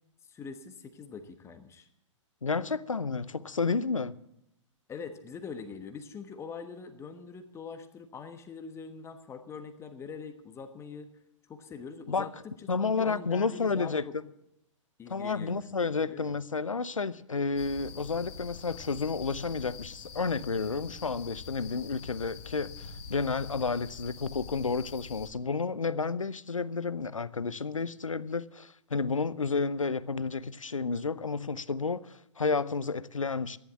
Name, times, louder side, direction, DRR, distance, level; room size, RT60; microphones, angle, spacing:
voice 1, 0.2-1.9 4.9-11.1 11.5-14.1 15.0-15.7 16.0-16.3, left 5 dB, 15° left, 1.2 m, -43 dB
voice 2, 2.4-4.2 12.1-12.3 12.7-14.0 15.1-33.6, left 4 dB, 90° left, 0.7 m, -31 dB
sound 1, 17.6-25.3, left 6 dB, 55° left, 2.9 m, -45 dB
14.0 x 11.0 x 7.2 m
figure-of-eight pair, 115°, 16 cm